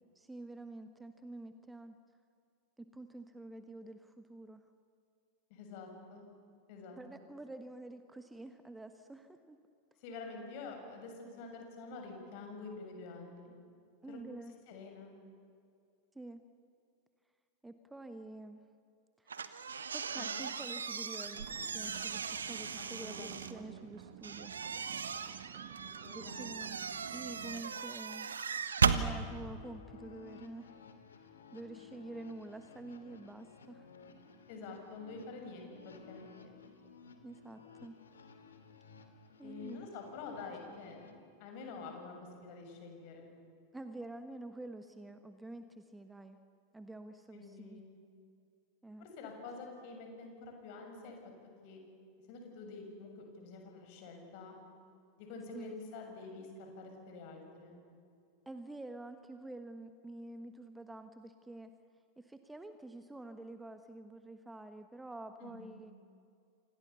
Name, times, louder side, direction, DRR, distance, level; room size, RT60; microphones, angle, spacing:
voice 1, 0.1-2.0 2.8-4.6 7.0-9.6 14.0-14.5 16.1-16.4 17.6-18.6 19.2-19.3 19.9-24.5 26.1-26.8 27.1-28.3 28.8-30.8 31.5-33.9 37.2-37.9 39.4-39.9 43.7-46.4 46.7-47.8 48.8-49.0 55.5-55.7 58.4-61.7 62.2-65.9, right 2 dB, 5° right, 9 dB, 1.4 m, -48 dB
voice 2, 5.5-6.2 6.7-7.3 10.0-13.5 14.1-14.2 14.7-15.1 20.1-20.5 22.8-23.8 25.8-26.8 34.5-36.5 39.4-41.0 41.4-43.3 47.3-48.0 49.0-51.3 51.6-51.8 52.3-54.5 55.2-57.8 65.4-65.8, left 4 dB, 45° left, 3 dB, 7.1 m, -48 dB
sound 1, 19.3-23.5 24.2-29.1, right 6 dB, 70° right, 1.4 m, -36 dB
sound 2, 21.3-27.6, right 13 dB, 50° right, 1.3 m, -51 dB
sound 3, 29.2-41.2, left 5 dB, 70° left, 2.8 m, -56 dB
30.0 x 27.0 x 7.1 m, 2.4 s
figure-of-eight pair, 90°, 0 cm